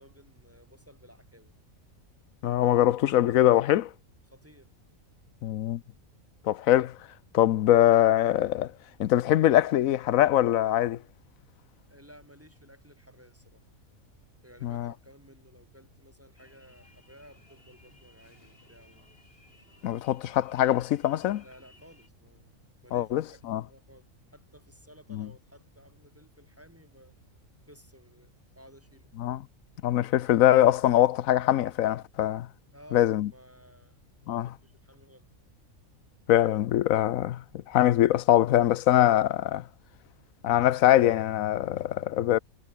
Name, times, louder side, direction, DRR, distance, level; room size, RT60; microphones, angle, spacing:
voice 1, 0.0-1.5 4.3-5.0 11.9-13.6 14.4-19.1 21.4-22.6 22.8-27.2 27.7-29.1 32.7-35.3, equal, 10° right, 6.7 m, -55 dB
voice 2, 2.4-3.9 5.4-5.8 6.5-7.0 7.3-8.7 9.0-11.0 14.6-14.9 19.8-21.4 22.9-23.6 25.1-25.3 29.2-29.4 29.8-32.5 32.9-33.3 34.3-34.5 36.3-39.6 40.4-42.4, left 13 dB, 75° left, 1.1 m, -23 dB
sound 1, 16.4-22.1, left 2 dB, 45° left, 4.7 m, -60 dB
omnidirectional pair, 1.4 m